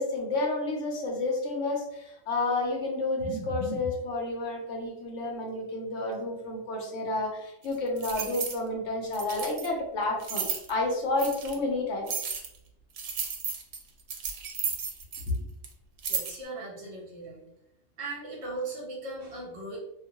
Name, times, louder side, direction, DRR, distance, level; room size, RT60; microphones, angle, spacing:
voice 1, 0.0-12.2, left 2 dB, 70° left, 0 dB, 1.0 m, -30 dB
sound 1, 7.7-8.6 9.1-9.7 10.2-10.7 11.2-11.5 12.1-12.6 13.0-15.4 15.6-15.7 16.0-16.4, right 6 dB, 85° right, 0.9 m, -33 dB
voice 2, 16.1-17.4 18.0-19.8, right 2 dB, 60° right, -3 dB, 1.1 m, -38 dB
2.6 x 2.2 x 2.8 m, 0.84 s
omnidirectional pair, 1.3 m